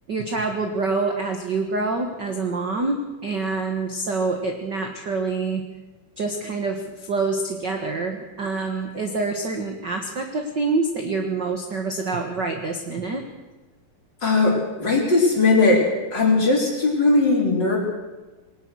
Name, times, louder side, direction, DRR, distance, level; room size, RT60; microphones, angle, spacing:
voice 1, 0.1-5.7 6.2-13.2, right 3 dB, 45° right, 4 dB, 1.5 m, -26 dB
voice 2, 14.2-15.8 16.1-17.8, left 3 dB, 30° left, 0 dB, 4.6 m, -19 dB
21.5 x 19.0 x 6.4 m, 1.1 s
omnidirectional pair, 4.1 m